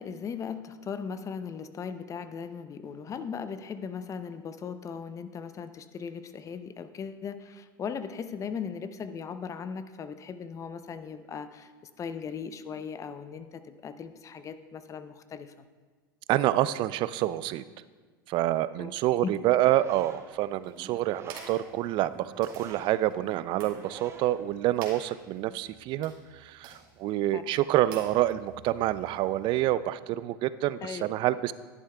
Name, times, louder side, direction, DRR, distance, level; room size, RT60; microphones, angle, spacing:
voice 1, 0.0-11.7 12.0-13.5 13.8-15.5 18.8-18.9 27.3-27.4 30.8-31.0, left 6 dB, 30° left, 11 dB, 0.6 m, -38 dB
voice 2, 16.3-17.6 18.3-31.5, right 14 dB, 45° right, 16 dB, 0.3 m, -27 dB
sound 1, 19.4-24.6, right 4 dB, 25° right, 0.9 m, -48 dB
sound 2, 20.6-29.6, right 5 dB, 60° right, 2.3 m, -51 dB
11.0 x 11.0 x 2.3 m, 1.4 s
hypercardioid pair, 100°, 11 cm